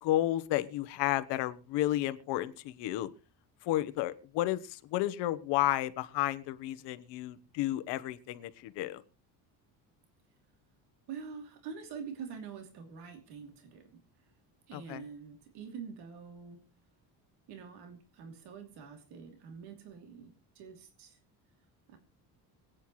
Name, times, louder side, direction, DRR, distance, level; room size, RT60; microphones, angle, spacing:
voice 1, 0.0-3.1 3.6-9.0 14.7-15.0, left 15 dB, 90° left, 13 dB, 1.1 m, -32 dB
voice 2, 11.1-14.0 14.7-16.6 17.5-21.2 21.9-22.0, right 6 dB, 70° right, 5 dB, 3.0 m, -46 dB
25.5 x 9.3 x 3.1 m, 0.33 s
cardioid pair, 175°, 40 cm